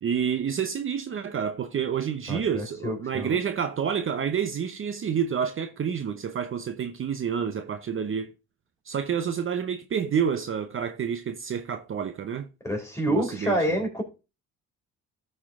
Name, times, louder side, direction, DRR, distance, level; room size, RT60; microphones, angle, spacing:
voice 1, 0.0-8.3 8.9-12.5 13.1-13.6, right 7 dB, 45° right, 0.7 m, -29 dB
voice 2, 2.3-3.3 12.6-14.0, equal, 10° left, 3.5 m, -28 dB
13.0 x 4.4 x 3.6 m
cardioid pair, 90°, 30 cm